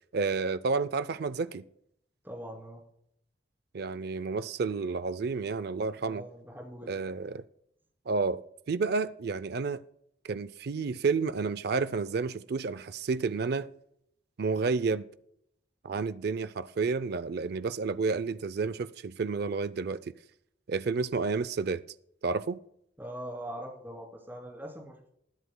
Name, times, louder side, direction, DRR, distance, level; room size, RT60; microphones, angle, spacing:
voice 1, 0.1-1.6 3.7-6.2 6.9-7.5 8.1-8.4 8.7-9.8 10.2-13.7 14.4-15.1 15.8-20.1 20.7-21.8 22.2-22.6, right 4 dB, 60° right, 0.5 m, -30 dB
voice 2, 2.2-2.8 6.0-6.9 23.0-25.1, equal, 10° right, 3.0 m, -42 dB
20.5 x 11.0 x 2.2 m
head